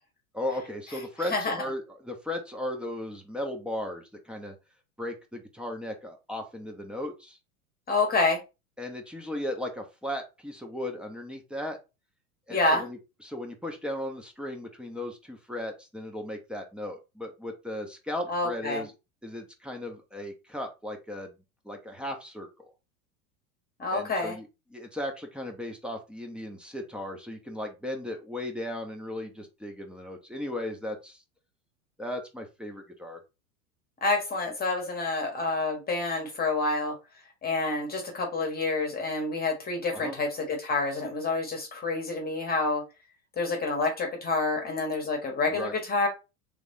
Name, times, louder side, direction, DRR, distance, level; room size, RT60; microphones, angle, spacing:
voice 1, 0.3-4.5 5.0-7.4 8.8-11.8 12.5-18.9 19.2-21.4 21.6-22.7 23.9-31.2 32.0-33.2 39.9-40.2 45.5-45.7, left 1 dB, ahead, 3 dB, 0.7 m, -36 dB
voice 2, 7.9-8.4 12.5-12.8 18.3-18.8 23.8-24.4 34.0-36.9 37.4-42.8 43.4-46.1, left 3 dB, 20° left, 2 dB, 1.2 m, -28 dB
3.4 x 3.3 x 2.6 m, 0.27 s
hypercardioid pair, 90°, 44 cm